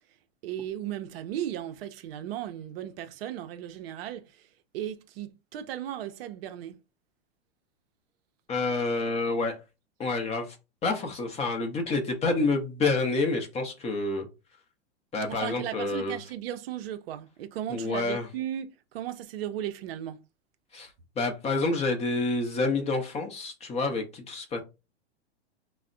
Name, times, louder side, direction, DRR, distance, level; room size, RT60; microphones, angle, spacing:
voice 1, 0.4-4.5 4.7-6.8 15.2-20.2, right 11 dB, 60° right, 0.5 m, -36 dB
voice 2, 8.5-9.6 10.0-10.6 10.8-14.3 15.1-16.2 17.7-18.3 20.7-20.9 21.2-24.6, left 3 dB, 20° left, 0.6 m, -28 dB
3.3 x 2.1 x 2.5 m
hypercardioid pair, 120°, 34 cm